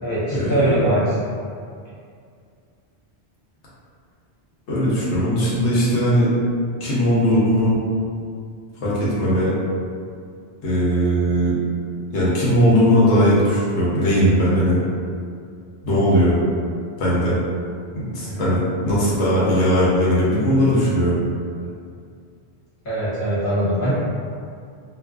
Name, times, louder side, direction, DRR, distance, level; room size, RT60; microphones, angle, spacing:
voice 1, 0.0-1.2 18.2-18.5 22.8-23.9, right 1 dB, 55° left, -11 dB, 1.0 m, -21 dB
voice 2, 4.7-6.3 6.8-7.7 8.8-9.5 10.6-11.6 12.1-14.8 15.8-16.4 17.0-17.3 18.1-21.2, equal, 90° left, -8 dB, 1.0 m, -18 dB
2.4 x 2.4 x 2.3 m, 2.3 s
omnidirectional pair, 1.1 m